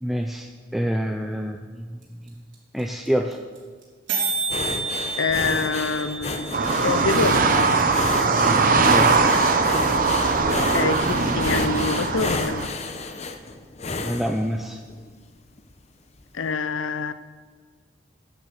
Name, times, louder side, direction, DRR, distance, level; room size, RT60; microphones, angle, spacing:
voice 1, 0.0-2.3 2.7-3.4 8.8-9.3 14.0-14.8, equal, ahead, 3 dB, 0.5 m, -27 dB
sound 1, 2.0-2.1 2.3-2.4 2.5-2.8 3.0-3.1 3.3-3.6 3.8-3.9 4.1-8.1, right 4 dB, 80° right, 4.0 m, -31 dB
sound 2, 4.5-15.1 15.6-15.8 16.1-16.2, left 3 dB, 35° left, 0.8 m, -32 dB
voice 2, 5.2-6.5 6.8-7.6 10.7-12.7 16.3-17.1, left 4 dB, 85° left, 13 dB, 0.7 m, -26 dB
sound 3, 6.5-12.7, right 4 dB, 45° right, 0.9 m, -20 dB
10.5 x 9.1 x 7.7 m, 1.5 s
head